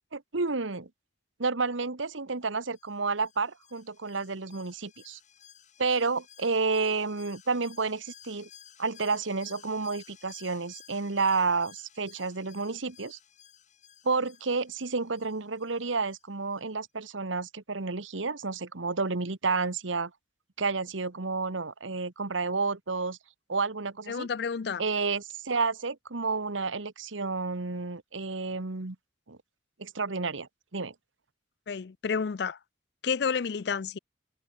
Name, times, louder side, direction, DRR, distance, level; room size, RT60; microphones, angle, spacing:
voice 1, 0.1-0.9 1.4-5.2 5.8-8.5 8.8-13.2 14.0-20.1 20.6-23.2 23.5-24.3 24.8-29.0 29.3-29.4 29.8-30.9, right 4 dB, 90° right, 1.4 m, -30 dB
Alarm, 2.7-16.2 16.5-16.6, left 10 dB, 40° left, 3.7 m, -55 dB
voice 2, 24.1-24.8 31.7-32.6 33.0-34.0, left 6 dB, 60° left, 0.4 m, -30 dB
head